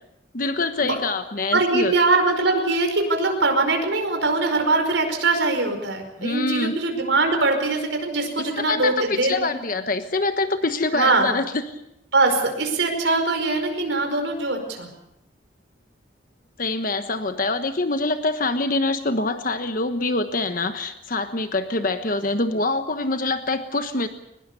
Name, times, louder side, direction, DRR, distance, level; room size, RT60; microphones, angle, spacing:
voice 1, 0.3-1.9 6.2-6.7 8.4-11.7 16.6-24.1, left 3 dB, 50° left, 8 dB, 1.2 m, -25 dB
voice 2, 1.5-9.3 10.9-11.3 12.1-14.9, right 3 dB, 80° right, 4 dB, 5.1 m, -22 dB
22.5 x 20.5 x 6.9 m, 0.83 s
head